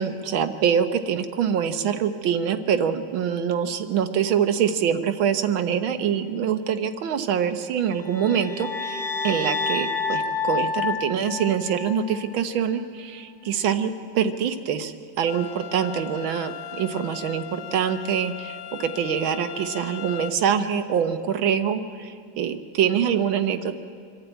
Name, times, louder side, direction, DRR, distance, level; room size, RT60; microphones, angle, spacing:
voice 1, 0.0-23.8, right 8 dB, 80° right, 9 dB, 1.7 m, -25 dB
sound 1, 7.9-12.2, left 4 dB, 35° left, 1.2 m, -28 dB
sound 2, 15.3-20.3, left 10 dB, 70° left, 0.8 m, -38 dB
25.5 x 11.5 x 8.9 m, 2.2 s
omnidirectional pair, 2.2 m